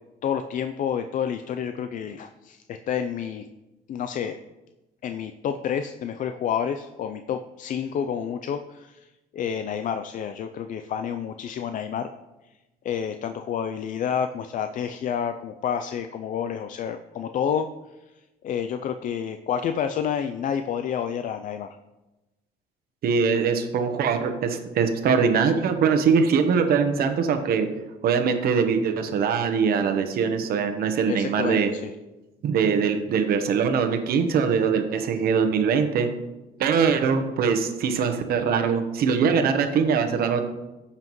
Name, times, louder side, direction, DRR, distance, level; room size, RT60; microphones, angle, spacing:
voice 1, 0.2-3.4 3.9-4.4 5.0-9.1 9.3-12.1 12.8-17.7 18.4-21.8 31.1-31.9, left 8 dB, 50° left, 8 dB, 0.4 m, -29 dB
voice 2, 23.0-27.7 28.0-31.7 32.4-36.1 36.6-40.4, right 6 dB, 65° right, 7 dB, 1.1 m, -22 dB
14.5 x 5.7 x 3.1 m, 1.1 s
cardioid pair, 110°, 17 cm